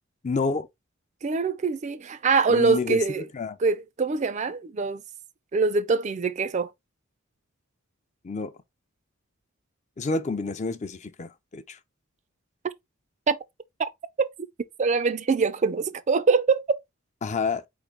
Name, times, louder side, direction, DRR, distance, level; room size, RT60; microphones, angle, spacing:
voice 1, 0.2-0.7 2.5-3.0 3.3-3.6 8.2-8.5 10.0-11.8 17.2-17.6, left 4 dB, 35° left, 0.4 m, -28 dB
voice 2, 1.2-3.2 3.6-5.0 5.5-6.7 13.3-13.4 13.8-13.9 14.2-14.3 14.8-16.8, right 4 dB, 35° right, 0.4 m, -24 dB
4.4 x 3.6 x 3.2 m
head